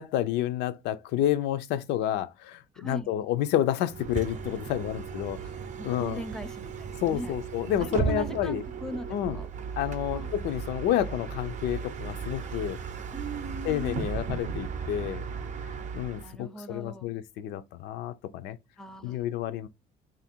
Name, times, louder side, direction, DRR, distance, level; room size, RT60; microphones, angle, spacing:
voice 1, 0.0-5.4 5.8-6.2 7.0-8.6 9.1-9.4 9.8-12.8 13.6-15.2 15.9-18.6 19.0-19.7, left 11 dB, 80° left, 0.4 m, -29 dB
voice 2, 2.7-3.1 5.7-7.3 7.8-9.5 10.1-10.3 13.1-14.1 16.1-17.1 18.8-19.2, right 1 dB, 5° left, 0.4 m, -39 dB
Bus, 3.9-16.3, right 6 dB, 45° right, 0.5 m, -36 dB
3.2 x 2.5 x 4.3 m
cardioid pair, 110°, 17 cm